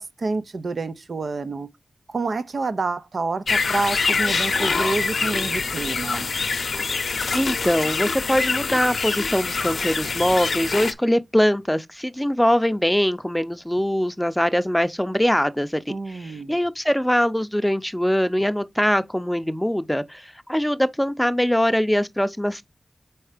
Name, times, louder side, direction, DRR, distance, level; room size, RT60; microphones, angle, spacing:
voice 1, 0.0-1.7 2.1-6.3 15.9-16.6, right 3 dB, 80° right, 0.6 m, -28 dB
sound 1, 3.5-10.9, left 4 dB, 90° left, 0.6 m, -25 dB
voice 2, 7.3-22.6, equal, 5° left, 0.5 m, -22 dB
4.5 x 4.2 x 4.9 m
cardioid pair, 50°, 0 cm